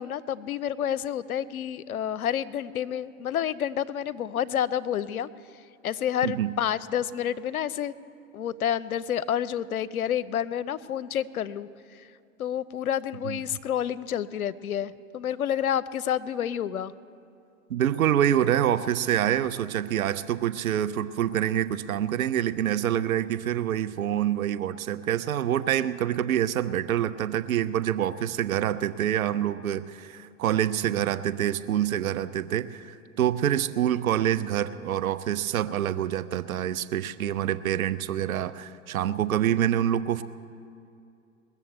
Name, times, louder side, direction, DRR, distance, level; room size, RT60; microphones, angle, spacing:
voice 1, 0.0-5.3 5.8-7.9 8.3-11.7 12.4-16.9, left 9 dB, 85° left, 17 dB, 0.7 m, -29 dB
voice 2, 17.7-40.2, right 11 dB, 75° right, 14 dB, 0.7 m, -26 dB
20.5 x 7.1 x 8.1 m, 2.5 s
hypercardioid pair, 110°, 42 cm